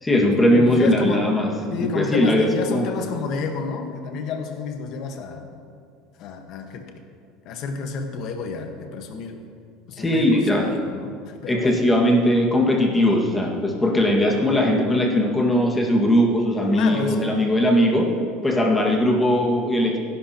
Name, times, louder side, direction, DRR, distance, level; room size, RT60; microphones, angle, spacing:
voice 1, 0.0-1.5 1.8-2.9 10.0-10.7 11.5-18.1 18.4-20.0, left 1 dB, 10° left, 0 dB, 1.8 m, -19 dB
voice 2, 0.5-1.2 1.7-5.5 6.2-6.8 7.4-9.4 9.9-11.8 16.7-17.2, left 5 dB, 55° left, 4 dB, 1.3 m, -30 dB
17.5 x 11.0 x 2.9 m, 2.3 s
supercardioid pair, 135°, 0 cm